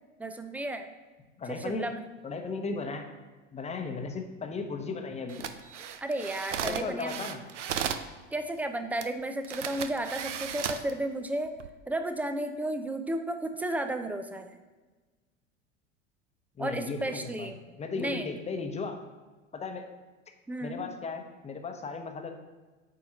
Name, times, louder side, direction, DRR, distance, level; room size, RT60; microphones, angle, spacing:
voice 1, 0.2-0.9 1.5-2.0 6.0-7.2 8.3-11.5 11.9-14.6 16.6-17.6 18.0-18.3 20.5-20.9, right 1 dB, 5° right, 7 dB, 0.5 m, -33 dB
voice 2, 1.4-1.9 2.2-3.1 3.5-5.5 6.6-7.4 16.6-17.5 17.8-19.0 19.5-19.9 20.6-22.3, left 4 dB, 20° left, 5 dB, 1.0 m, -36 dB
sound 1, 5.3-8.1 9.0-9.1 9.4-10.9 11.5-11.7, right 8 dB, 75° right, 0.6 m, -35 dB
8.8 x 4.8 x 4.2 m, 1.3 s
figure-of-eight pair, 80°, 37 cm